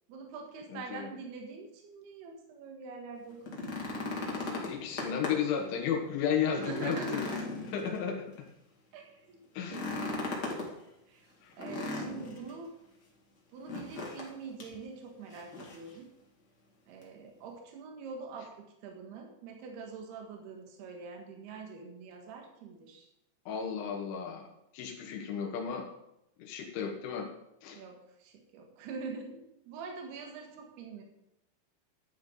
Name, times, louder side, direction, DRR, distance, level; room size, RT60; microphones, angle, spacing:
voice 1, 0.1-3.8 6.6-7.4 8.9-9.4 9.7-10.6 11.1-11.3 11.6-12.7 13.5-16.1 16.9-23.1 27.8-31.0, right 4 dB, 65° right, 2 dB, 3.5 m, -44 dB
voice 2, 0.7-1.1 4.7-8.3 9.6-9.8 11.4-11.5 23.5-24.5 24.7-25.9 26.4-27.3 27.6-27.8, left 7 dB, 90° left, 2 dB, 3.7 m, -34 dB
sound 1, 3.3-5.6 6.0-6.1 6.5-8.4 9.6-10.7 11.6-12.5 13.7-14.3 14.6-14.7 15.3-15.9 17.0-17.1, left 2 dB, 45° left, 1.3 m, -37 dB
13.0 x 10.5 x 3.9 m, 0.83 s
omnidirectional pair, 5.3 m